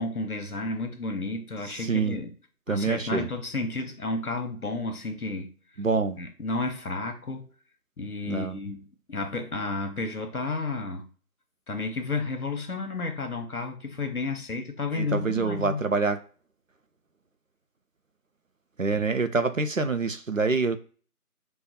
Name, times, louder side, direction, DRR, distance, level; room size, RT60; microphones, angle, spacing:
voice 1, 0.0-2.3 2.7-5.5 6.2-7.5 8.0-8.8 9.1-11.1 11.7-15.8 18.9-19.1, left 3 dB, 70° left, 1.0 m, -32 dB
voice 2, 1.7-2.2 2.7-3.3 5.8-6.2 8.3-8.6 14.9-16.2 18.8-20.8, right 4 dB, 60° right, 0.5 m, -26 dB
4.0 x 2.3 x 4.0 m
figure-of-eight pair, 170°, 46 cm